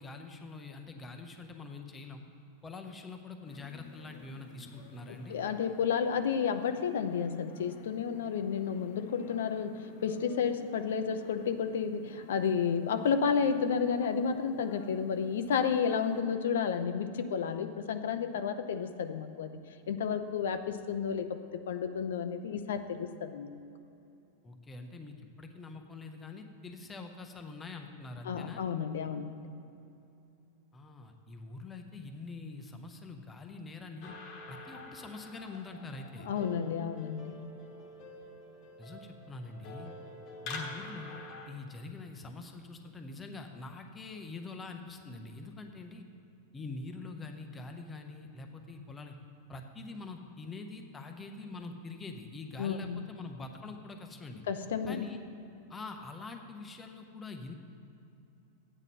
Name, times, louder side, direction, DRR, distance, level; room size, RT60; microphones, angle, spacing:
voice 1, 0.0-2.2 2.6-5.4 24.4-28.6 30.7-34.2 34.5-36.3 38.8-39.9 40.4-46.0 46.5-49.2 49.5-54.4 54.9-55.2 55.7-57.5, left 3 dB, 10° left, 5 dB, 0.6 m, -44 dB
sound 1, 3.4-16.2, left 4 dB, 60° left, 1.0 m, -53 dB
voice 2, 5.1-19.6 19.9-23.6 28.2-29.4 36.2-37.3 52.6-53.0 54.5-55.1, left 6 dB, 85° left, 8 dB, 0.7 m, -31 dB
sound 2, 34.0-41.5, left 2 dB, 35° left, 1.1 m, -46 dB
13.0 x 9.0 x 4.2 m, 2.7 s
supercardioid pair, 175°, 0 cm